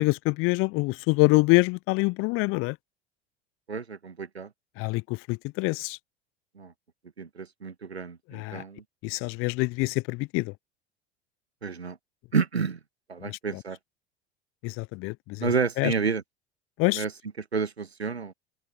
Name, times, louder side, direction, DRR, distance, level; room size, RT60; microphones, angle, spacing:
voice 1, 0.0-2.8 4.8-6.0 8.3-8.6 9.0-10.5 13.2-13.6 14.6-15.5 15.8-15.9 16.8-17.0, left 25 dB, 45° left, 0.5 m, -25 dB
voice 2, 3.7-4.5 6.6-6.7 7.2-8.8 11.6-12.0 12.3-12.8 13.1-13.8 15.4-16.2 16.9-17.1 17.5-18.3, right 5 dB, 90° right, 1.6 m, -30 dB
open air
figure-of-eight pair, 75°, 31 cm